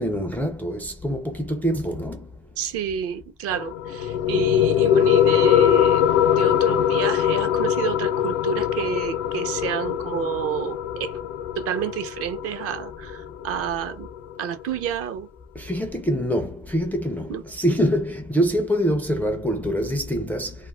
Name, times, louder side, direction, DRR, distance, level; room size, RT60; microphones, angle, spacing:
voice 1, 0.0-2.3 15.6-20.5, equal, 5° left, 0.4 m, -25 dB
voice 2, 2.6-6.0 6.4-11.1 11.6-14.1 14.4-15.3 17.3-17.4, right 8 dB, 50° right, 0.6 m, -29 dB
sound 1, 3.5-14.5, left 10 dB, 75° left, 0.5 m, -22 dB
2.3 x 2.0 x 3.4 m
cardioid pair, 125°, 31 cm